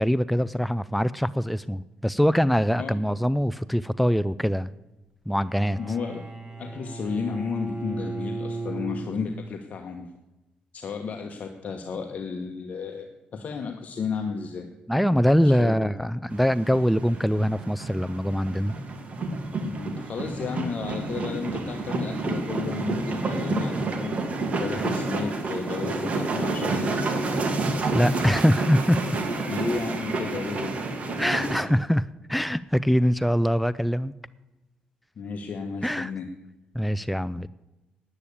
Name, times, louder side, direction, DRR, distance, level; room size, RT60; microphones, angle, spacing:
voice 1, 0.0-4.7 5.3-5.8 14.9-18.7 24.8-24.9 27.9-29.0 31.2-34.1 35.8-36.1 36.7-37.5, equal, ahead, 15 dB, 0.3 m, -23 dB
Bowed string instrument, 5.4-9.5, right 2 dB, 25° right, 2.1 m, -35 dB
voice 2, 5.8-6.3 6.6-10.1 10.7-14.7 15.4-15.9 18.7-18.8 19.6-27.3 29.5-30.7 35.2-36.3, left 5 dB, 50° left, 4 dB, 1.2 m, -33 dB
sound 1, 16.3-31.6, right 3 dB, 45° right, 2.1 m, -29 dB
9.8 x 8.9 x 8.5 m, 1.0 s
cardioid pair, 95°, 3 cm